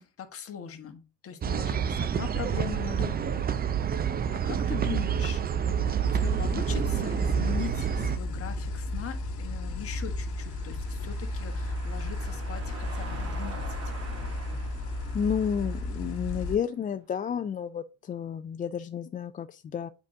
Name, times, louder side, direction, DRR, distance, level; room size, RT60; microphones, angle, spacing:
voice 1, 0.0-3.6 4.3-13.9, left 9 dB, 40° left, 1.4 m, -40 dB
sound 1, 1.4-8.2, right 8 dB, 25° right, 0.6 m, -28 dB
sound 2, 6.0-16.6, left 2 dB, 60° left, 2.3 m, -34 dB
sound 3, 9.8-16.5, right 3 dB, 45° right, 3.1 m, -46 dB
voice 2, 15.1-19.9, left 7 dB, 25° left, 0.4 m, -31 dB
8.1 x 5.1 x 2.7 m
supercardioid pair, 85°, 35 cm